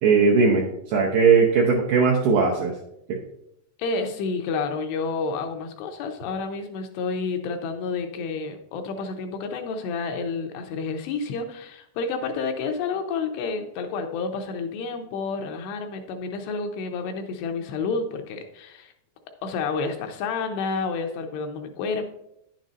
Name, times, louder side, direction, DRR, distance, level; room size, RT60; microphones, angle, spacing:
voice 1, 0.0-2.8 3.1-3.2, right 5 dB, 80° right, -1 dB, 2.1 m, -19 dB
voice 2, 3.8-18.9 19.4-22.1, left 4 dB, 80° left, 5 dB, 2.6 m, -30 dB
10.0 x 7.4 x 2.6 m, 0.81 s
omnidirectional pair, 5.1 m